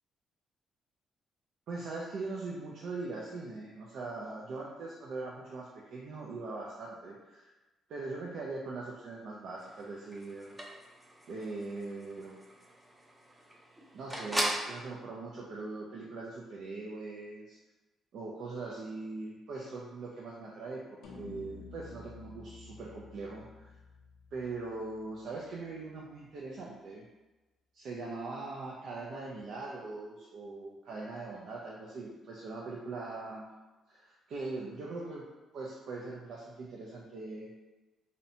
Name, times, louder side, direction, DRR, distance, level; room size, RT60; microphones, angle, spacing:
voice 1, 1.7-7.5 7.9-10.6 11.3-12.3 13.9-17.6 18.1-23.7 24.3-27.0 27.7-33.4 33.9-35.3 35.5-37.5, right 3 dB, 70° right, -4 dB, 0.3 m, -41 dB
sound 1, 9.6-14.7, right 1 dB, 5° right, 0.5 m, -39 dB
sound 2, 21.0-25.5, left 4 dB, 80° left, 0.4 m, -51 dB
2.7 x 2.1 x 2.6 m, 1.1 s
cardioid pair, 90°, 0 cm